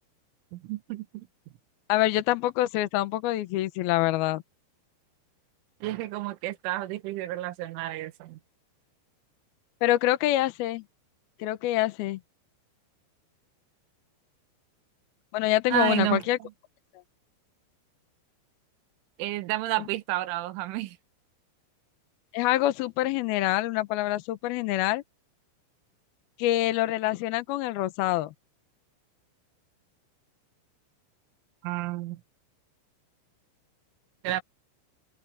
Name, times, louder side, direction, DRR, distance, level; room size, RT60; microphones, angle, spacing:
voice 1, 0.5-1.3 5.8-8.4 15.7-16.2 19.2-21.0 31.6-32.2 34.2-34.4, right 16 dB, 85° right, 3.5 m, -30 dB
voice 2, 1.9-4.4 9.8-10.8 11.4-12.2 15.3-16.4 22.3-25.0 26.4-28.3, left 15 dB, 75° left, 2.3 m, -26 dB
omnidirectional pair, 5.5 m